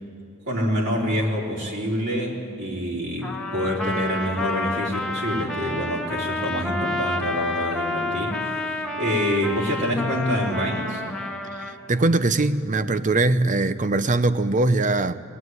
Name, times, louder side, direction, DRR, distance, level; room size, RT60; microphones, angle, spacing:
voice 1, 0.5-11.0, equal, 60° right, -4 dB, 3.8 m, -26 dB
Trumpet, 3.2-11.7, left 2 dB, 5° left, 1.6 m, -29 dB
voice 2, 11.5-15.1, right 2 dB, 40° right, 13 dB, 0.7 m, -21 dB
21.0 x 19.0 x 9.6 m, 2.5 s
head